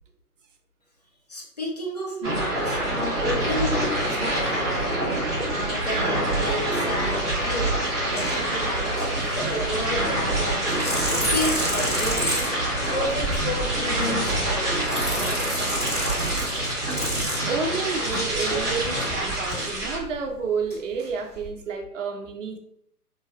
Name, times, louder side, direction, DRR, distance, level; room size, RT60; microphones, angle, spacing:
voice 1, 1.3-4.9 5.4-7.8 8.1-10.8 11.0-12.5 12.9-15.6, left 1 dB, 30° left, -2 dB, 0.5 m, -32 dB
sound 1, 2.2-20.0, right 1 dB, 15° right, 1.3 m, -26 dB
sound 2, 6.3-6.4 7.3-7.7 8.1-8.4 8.7-10.3 10.7-20.3 20.7-20.8 21.0-21.5, equal, 15° left, 1.3 m, -32 dB
voice 2, 17.4-22.6, right 5 dB, 55° right, 4 dB, 0.6 m, -30 dB
3.1 x 2.7 x 2.2 m, 0.72 s
figure-of-eight pair, 145°, 46 cm